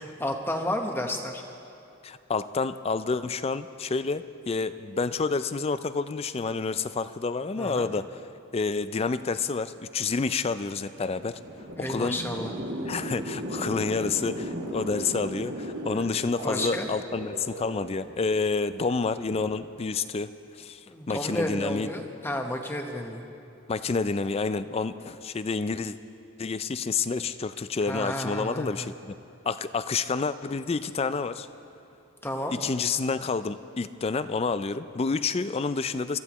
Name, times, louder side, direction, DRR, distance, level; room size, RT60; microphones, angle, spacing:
voice 1, 0.0-1.4 7.6-7.9 11.7-12.5 16.4-16.9 20.9-23.3 27.8-28.9 32.2-32.6, left 1 dB, 10° left, 3 dB, 1.0 m, -32 dB
voice 2, 2.0-8.2 8.5-11.4 11.8-12.2 12.8-21.9 23.7-26.0 26.4-29.1 29.5-31.5 32.5-36.2, left 4 dB, 25° left, 13 dB, 0.3 m, -29 dB
sound 1, 10.8-18.2 19.1-19.6, right 1 dB, 80° right, 2.3 m, -36 dB
25.5 x 15.0 x 3.1 m, 2.7 s
head